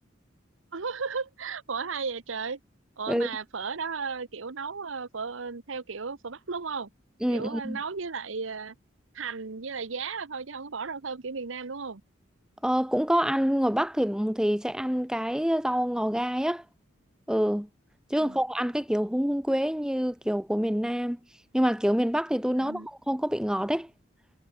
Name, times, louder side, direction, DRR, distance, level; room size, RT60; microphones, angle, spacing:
voice 1, 0.7-2.6 3.0-6.9 7.3-8.7 9.1-12.0 18.2-18.4 22.5-22.9, right 5 dB, 85° right, 1.0 m, -35 dB
voice 2, 7.2-7.8 12.6-16.6 17.3-17.7 18.1-21.2 21.5-23.9, equal, 5° right, 1.2 m, -26 dB
head